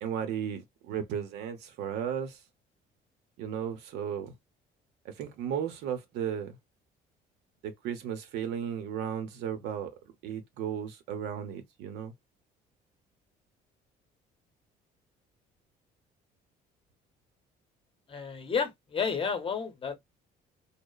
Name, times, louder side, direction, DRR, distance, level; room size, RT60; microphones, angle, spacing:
voice 1, 0.0-2.4 3.4-4.3 5.0-6.6 7.6-9.9 10.2-12.1, right 8 dB, 85° right, 0.7 m, -35 dB
voice 2, 18.1-20.0, left 6 dB, 30° left, 0.7 m, -31 dB
2.9 x 2.0 x 2.2 m
cardioid pair, 110°, 17 cm